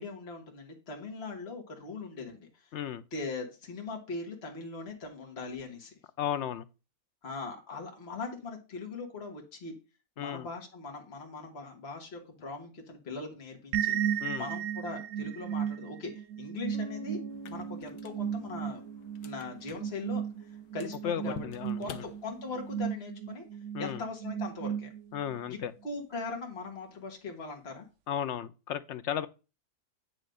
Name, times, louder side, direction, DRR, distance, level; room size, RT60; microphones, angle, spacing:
voice 1, 0.0-2.7 3.1-6.0 7.2-9.7 10.2-17.2 17.5-18.8 19.2-21.4 21.8-23.4 23.8-24.9 25.5-27.9, left 3 dB, 45° left, 1.8 m, -40 dB
voice 2, 2.7-3.0 6.2-6.6 10.2-10.5 14.2-14.5 21.0-22.0 23.7-24.0 25.1-25.7 28.1-29.3, left 9 dB, 65° left, 0.7 m, -34 dB
sound 1, 13.7-25.4, right 9 dB, 70° right, 0.9 m, -35 dB
Bass guitar, 16.7-20.6, right 1 dB, 35° right, 1.0 m, -47 dB
sound 2, 17.3-22.8, left 10 dB, 85° left, 1.2 m, -50 dB
9.3 x 3.1 x 6.3 m
omnidirectional pair, 1.6 m